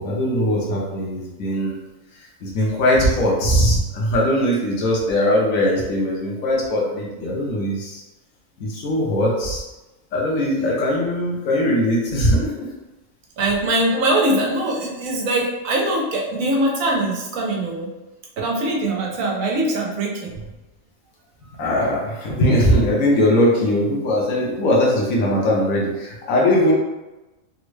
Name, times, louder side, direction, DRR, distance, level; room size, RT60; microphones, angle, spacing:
voice 1, 0.0-1.8 2.4-8.0 8.6-9.6 10.1-12.5 21.6-26.7, left 1 dB, 80° left, -3 dB, 1.2 m, -20 dB
voice 2, 13.4-17.9 18.4-20.4, right 1 dB, 75° right, -1 dB, 1.1 m, -22 dB
3.5 x 2.1 x 3.1 m, 1.0 s
omnidirectional pair, 1.4 m